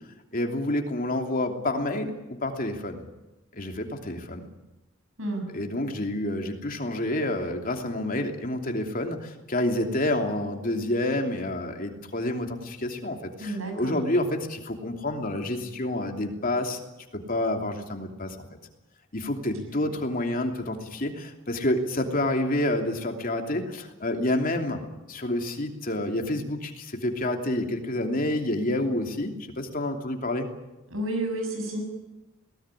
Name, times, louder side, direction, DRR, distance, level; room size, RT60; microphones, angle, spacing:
voice 1, 0.3-3.0 3.5-4.5 5.5-16.8 17.1-18.4 19.1-24.8 25.1-30.5, left 1 dB, 45° left, 4 dB, 3.0 m, -28 dB
voice 2, 5.2-5.5 13.4-14.0 30.9-31.8, right 1 dB, 80° right, 4 dB, 7.0 m, -30 dB
22.0 x 18.5 x 9.9 m, 1.0 s
head